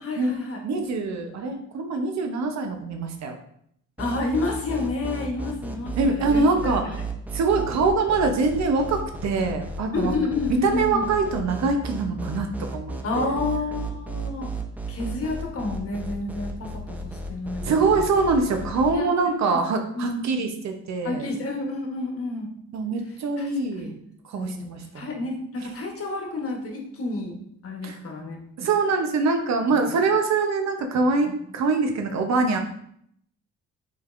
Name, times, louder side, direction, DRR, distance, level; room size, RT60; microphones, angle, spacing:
voice 1, 0.0-0.6 4.0-7.0 9.9-11.1 13.0-14.5 14.9-18.1 18.9-19.6 19.9-20.5 21.0-22.5 23.0-23.5 23.8-23.9 24.4-24.7 24.9-27.4 27.6-28.4 29.7-30.0 31.2-31.3, left 3 dB, 50° left, 1 dB, 1.1 m, -30 dB
voice 2, 0.6-3.4 6.0-7.0 7.3-10.1 10.6-13.3 17.6-21.3 22.7-23.9 24.3-25.1 27.8-28.0 28.6-32.6, right 4 dB, 65° right, 5 dB, 0.8 m, -24 dB
sound 1, 4.0-18.9, right 2 dB, 5° right, 0.5 m, -33 dB
5.2 x 3.4 x 2.5 m, 0.68 s
cardioid pair, 90°, 30 cm